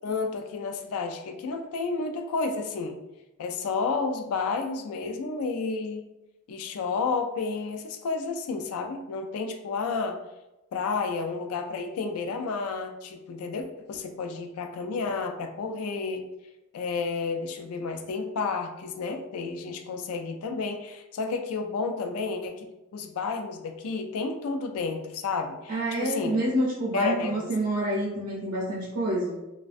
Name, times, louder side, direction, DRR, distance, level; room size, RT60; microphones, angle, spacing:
voice 1, 0.0-3.0 3.4-6.1 6.5-10.2 10.7-16.3 16.7-26.4 26.9-27.5, left 4 dB, 85° left, 6 dB, 0.3 m, -31 dB
voice 2, 25.7-29.4, right 1 dB, 85° right, -5 dB, 0.5 m, -27 dB
2.4 x 2.1 x 2.4 m, 0.99 s
head